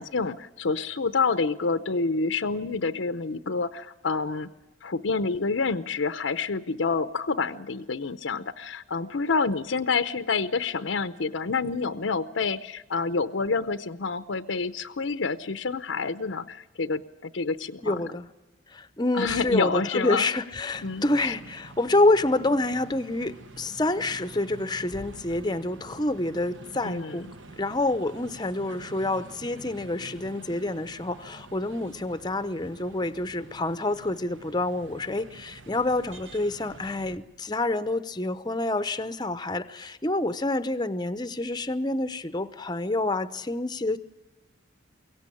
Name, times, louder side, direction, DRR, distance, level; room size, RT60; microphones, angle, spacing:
voice 1, 0.0-4.5 4.8-18.0 19.1-20.3 20.8-21.4 26.8-27.3, left 4 dB, 70° left, 11 dB, 0.7 m, -28 dB
voice 2, 17.8-18.3 18.7-27.3 27.6-44.0, left 2 dB, 20° left, 12 dB, 0.7 m, -27 dB
sound 1, 20.7-37.2, right 3 dB, 65° right, 1.3 m, -47 dB
23.0 x 17.0 x 9.9 m, 1.1 s
head